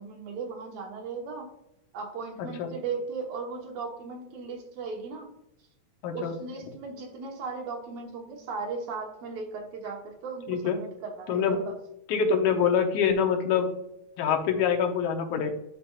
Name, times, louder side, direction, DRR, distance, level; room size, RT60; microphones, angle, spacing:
voice 1, 0.0-1.5 1.9-5.3 6.1-11.8, right 4 dB, 70° right, 1 dB, 2.3 m, -37 dB
voice 2, 2.4-2.7 6.0-6.4 10.5-10.8 11.3-11.6 12.1-13.7 14.2-15.5, left 7 dB, 85° left, 3 dB, 2.3 m, -25 dB
11.0 x 4.2 x 2.4 m, 0.81 s
omnidirectional pair, 3.3 m